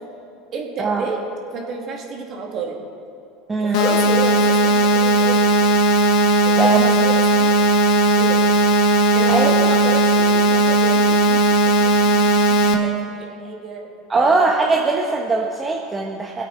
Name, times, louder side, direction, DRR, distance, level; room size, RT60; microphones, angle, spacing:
voice 1, 0.5-1.2 1.5-2.8 3.6-5.5 6.4-7.5 8.2-8.4 9.1-12.5 12.8-14.6, right 4 dB, 45° right, 0 dB, 2.6 m, -30 dB
sound 1, 3.7-12.7, right 1 dB, 65° left, 1.3 m, -16 dB
voice 2, 6.6-6.9 9.3-9.7 12.6-12.7 14.1-16.4, right 3 dB, 20° right, 0 dB, 1.1 m, -20 dB
20.5 x 8.2 x 4.4 m, 2.5 s
supercardioid pair, 100°, 0 cm